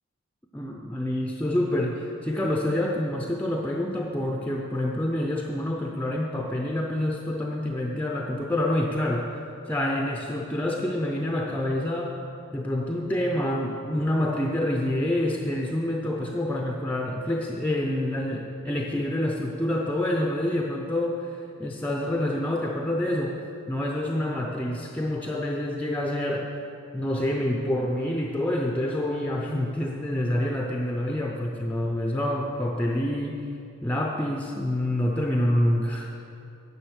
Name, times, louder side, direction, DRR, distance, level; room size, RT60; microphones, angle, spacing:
voice 1, 0.5-9.4 9.7-12.2 12.5-21.3 21.6-23.4 23.7-26.5 26.9-33.5 33.8-36.1, left 1 dB, 5° left, 1 dB, 0.5 m, -27 dB
9.9 x 7.5 x 6.3 m, 2.6 s
head